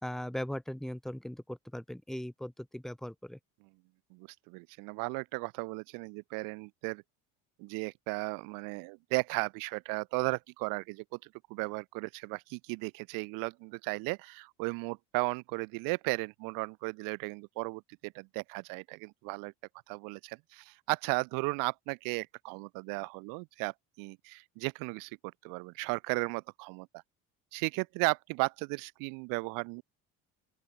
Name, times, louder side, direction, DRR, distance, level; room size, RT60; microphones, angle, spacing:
voice 1, 0.0-3.4, left 1 dB, ahead, 0.9 m, -39 dB
voice 2, 4.1-7.0 7.6-11.0 11.5-19.5 19.9-26.9 27.5-29.8, right 30 dB, 75° right, 0.6 m, -35 dB
open air
cardioid pair, 110°, 33 cm